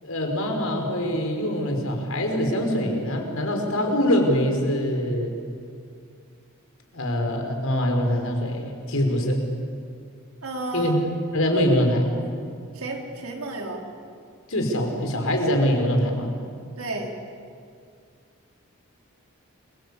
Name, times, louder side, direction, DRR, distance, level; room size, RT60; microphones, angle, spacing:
voice 1, 0.0-5.3 6.9-9.4 10.7-11.0 11.3-12.1 14.5-16.3, equal, 75° left, 3 dB, 5.4 m, -23 dB
voice 2, 10.4-11.0 12.7-13.8 16.8-17.1, right 2 dB, 85° right, 0 dB, 4.3 m, -32 dB
28.5 x 23.5 x 8.6 m, 2.3 s
head